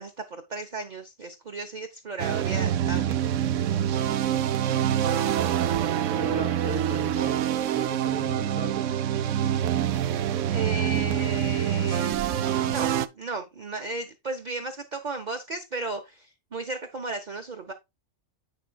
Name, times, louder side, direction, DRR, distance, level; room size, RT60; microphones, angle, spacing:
voice 1, 0.0-3.2 10.5-17.7, right 3 dB, 40° right, 0.8 m, -35 dB
sound 1, 2.2-13.1, right 10 dB, 70° right, 0.9 m, -26 dB
voice 2, 6.1-7.4 7.7-8.9, right 1 dB, 15° left, 2.0 m, -37 dB
8.2 x 6.5 x 2.3 m
omnidirectional pair, 1.5 m